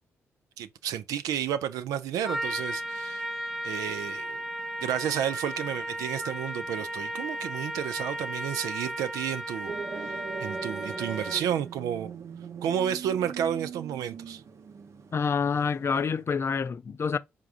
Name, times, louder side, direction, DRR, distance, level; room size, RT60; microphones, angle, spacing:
voice 1, 0.6-3.3 3.6-4.4 4.8-9.7 10.0-12.1 12.6-14.4, right 9 dB, 75° right, 0.4 m, -31 dB
Trumpet, 2.2-11.6, right 1 dB, 5° right, 0.7 m, -35 dB
sound 1, 9.7-16.2, right 6 dB, 55° right, 0.7 m, -40 dB
voice 2, 15.1-17.2, left 5 dB, 45° left, 0.4 m, -27 dB
4.7 x 3.6 x 2.4 m
hypercardioid pair, 45°, 6 cm